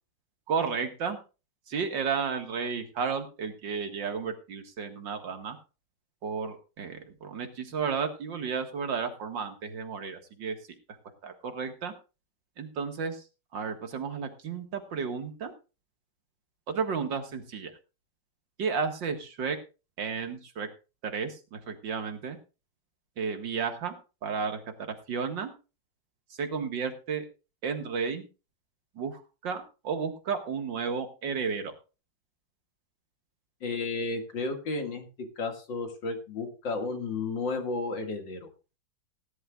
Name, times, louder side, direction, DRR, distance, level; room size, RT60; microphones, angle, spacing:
voice 1, 0.5-1.2 1.7-5.6 6.2-10.6 11.2-11.9 12.6-13.2 13.5-15.5 16.7-17.7 18.6-19.6 20.0-20.7 21.0-22.4 23.2-24.0 24.2-25.5 26.4-27.2 27.6-28.3 29.0-31.7, right 5 dB, 85° right, 6 dB, 2.5 m, -32 dB
voice 2, 33.6-35.1 35.4-38.5, left 3 dB, 85° left, 5 dB, 2.8 m, -32 dB
19.0 x 11.0 x 2.4 m, 0.31 s
omnidirectional pair, 2.0 m